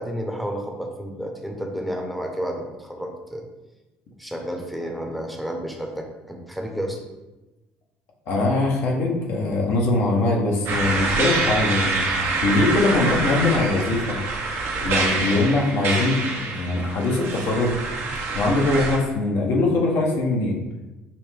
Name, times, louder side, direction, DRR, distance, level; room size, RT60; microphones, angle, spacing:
voice 1, 0.0-3.4 4.2-7.0, equal, ahead, 1 dB, 0.8 m, -31 dB
voice 2, 8.3-14.2 14.7-17.7 18.3-20.6, left 2 dB, 65° left, -1 dB, 0.9 m, -22 dB
sound 1, 10.7-19.0, right 3 dB, 65° right, 0.7 m, -26 dB
5.4 x 2.1 x 3.3 m, 1.1 s
supercardioid pair, 75°, 4 cm